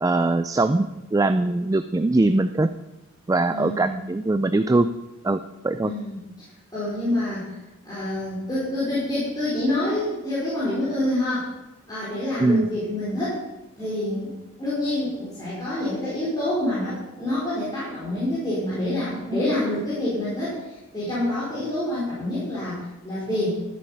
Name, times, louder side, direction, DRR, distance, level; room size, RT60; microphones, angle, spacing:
voice 1, 0.0-2.7 3.3-4.9 5.2-5.9 12.4-12.7, right 2 dB, 15° right, 10 dB, 0.3 m, -21 dB
voice 2, 3.5-4.0 5.8-6.2 6.7-7.5 7.8-11.5 11.9-13.4 13.8-14.3 14.6-20.6 20.9-23.5, left 1 dB, 20° left, -10 dB, 4.6 m, -27 dB
13.5 x 8.5 x 5.6 m, 1.0 s
head